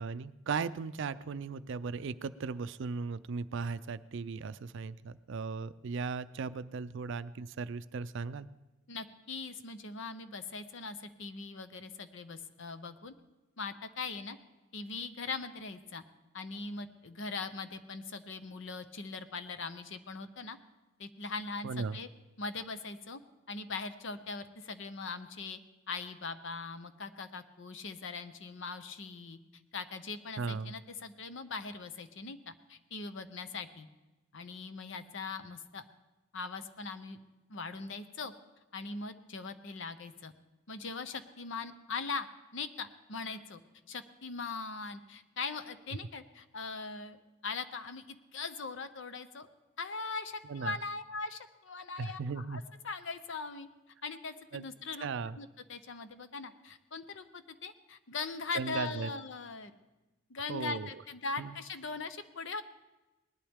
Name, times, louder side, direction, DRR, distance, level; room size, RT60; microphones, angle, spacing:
voice 1, 0.0-8.5 21.6-22.0 30.4-30.7 50.5-50.8 52.0-52.6 54.5-54.7 55.0-55.4 58.5-59.1 60.5-60.9 61.4-61.6, right 5 dB, 60° right, 14 dB, 0.4 m, -37 dB
voice 2, 8.9-13.1 13.6-14.4 14.7-16.0 16.3-20.6 21.0-22.1 22.4-23.2 23.5-25.6 25.9-29.4 29.7-33.9 34.3-35.8 36.3-37.2 37.5-38.3 38.7-40.3 40.7-42.3 42.5-43.6 43.9-49.5 49.8-53.7 54.0-55.1 55.4-59.7 60.3-62.6, left 4 dB, 60° left, 11 dB, 0.8 m, -40 dB
19.0 x 11.5 x 3.6 m, 1.1 s
head